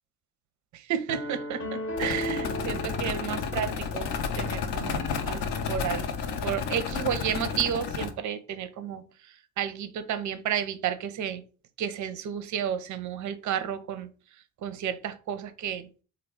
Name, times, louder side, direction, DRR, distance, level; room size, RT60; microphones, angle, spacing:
voice 1, 0.7-6.1 6.4-9.0 9.6-11.4 11.8-14.1 14.6-15.9, right 9 dB, 40° right, 0.5 m, -32 dB
sound 1, 1.1-4.3, left 1 dB, 25° left, 0.9 m, -36 dB
sound 2, 2.0-8.1, left 6 dB, 55° left, 0.7 m, -31 dB
3.3 x 2.3 x 3.5 m
hypercardioid pair, 55°, 47 cm